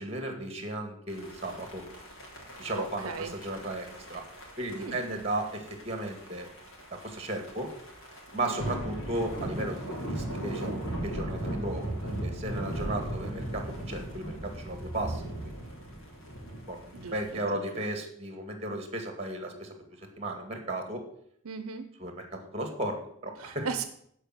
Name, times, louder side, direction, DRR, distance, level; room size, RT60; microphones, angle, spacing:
voice 1, 0.0-1.8 2.6-4.2 4.6-6.5 6.9-7.7 8.3-11.9 12.2-15.3 16.7-19.7 20.2-21.0 22.0-23.7, right 1 dB, 30° right, 4 dB, 2.1 m, -35 dB
sound 1, 1.1-17.4, right 1 dB, 65° left, 3.5 m, -38 dB
voice 2, 2.8-3.3 4.7-5.0 8.4-8.7 16.9-17.8 21.4-21.9 23.4-23.8, right 5 dB, 80° right, 10 dB, 0.8 m, -37 dB
12.0 x 5.5 x 7.5 m, 0.68 s
head